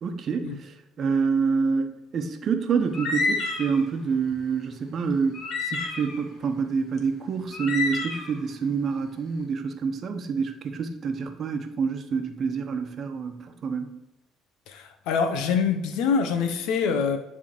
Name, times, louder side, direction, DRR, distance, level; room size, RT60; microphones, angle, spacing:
voice 1, 0.0-14.0, right 5 dB, 50° right, 6 dB, 1.0 m, -27 dB
sound 1, 2.9-3.8 4.3-4.4 5.3-6.2 7.0-7.1 7.4-8.4, left 3 dB, 60° left, 1.4 m, -29 dB
voice 2, 14.7-17.2, left 6 dB, 80° left, 7 dB, 0.9 m, -25 dB
9.9 x 3.6 x 4.5 m, 0.97 s
supercardioid pair, 90°, 0 cm